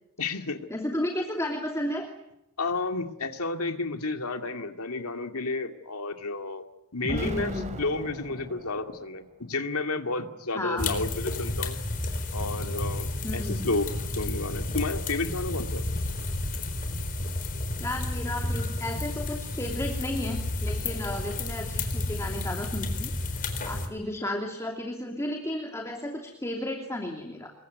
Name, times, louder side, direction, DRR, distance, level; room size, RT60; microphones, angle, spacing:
voice 1, 0.2-0.6 2.6-6.6 6.9-11.8 12.3-13.9 14.2-15.8, left 3 dB, 75° left, 6 dB, 2.4 m, -31 dB
voice 2, 0.7-2.1 7.1-7.8 10.5-11.1 13.2-13.8 17.8-27.5, left 1 dB, 15° left, 2 dB, 2.9 m, -33 dB
Explosion, 7.0-9.2, right 1 dB, 35° right, 2.8 m, -38 dB
sound 1, 10.8-23.9, left 2 dB, 40° left, 4.2 m, -31 dB
28.0 x 22.5 x 9.4 m, 0.83 s
head